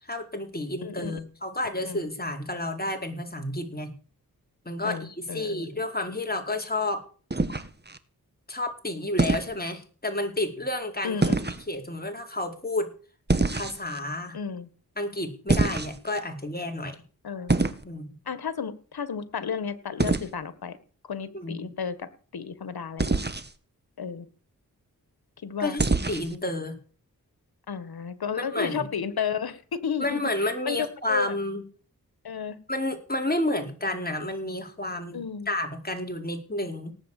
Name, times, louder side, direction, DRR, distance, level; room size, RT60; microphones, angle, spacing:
voice 1, 0.0-3.9 4.6-7.0 7.5-7.6 8.5-11.2 11.7-12.9 13.5-14.4 15.0-17.0 17.8-18.1 21.3-21.7 25.6-26.8 28.3-28.9 30.0-31.6 32.7-36.9, left 1 dB, 25° left, 3 dB, 4.8 m, -30 dB
voice 2, 0.8-1.2 1.8-2.0 4.8-5.8 11.0-11.4 14.3-14.7 17.2-17.5 18.3-20.8 21.0-23.1 24.0-24.3 25.4-25.8 27.7-30.2 30.6-31.4 32.2-32.6 35.1-35.5, left 6 dB, 85° left, 13 dB, 1.7 m, -33 dB
sound 1, 7.3-8.0 9.2-9.5 11.2-11.6 13.3-14.0 15.5-16.2 17.5-17.8 20.0-20.3 23.0-23.5 25.8-26.4, right 3 dB, 30° right, 1.9 m, -25 dB
18.0 x 8.3 x 8.4 m, 0.40 s
cardioid pair, 45°, 36 cm